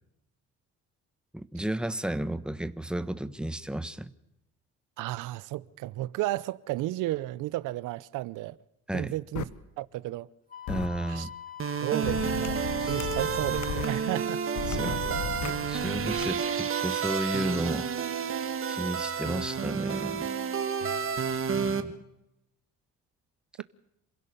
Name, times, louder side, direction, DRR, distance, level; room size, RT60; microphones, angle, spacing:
voice 1, 1.3-4.1 8.9-9.1 10.7-11.3 12.8-13.0 14.7-15.0 15.7-17.9 18.7-20.3 21.5-21.9, right 1 dB, 5° right, 1.2 m, -33 dB
voice 2, 5.0-8.6 8.9-9.5 9.8-10.3 11.1-11.3 11.8-12.6 12.9-14.4 14.7-15.3 20.8-21.0, right 16 dB, 90° right, 0.8 m, -33 dB
sound 1, 9.3-9.4 10.7-10.9 12.0-13.9 14.5-16.3, left 10 dB, 75° left, 1.5 m, -35 dB
Wind instrument woodwind instrument, 10.5-14.2, left 9 dB, 30° left, 2.2 m, -44 dB
sound 2, 11.6-21.8, right 6 dB, 45° right, 2.1 m, -30 dB
27.5 x 16.5 x 6.9 m
cardioid pair, 95°, 30 cm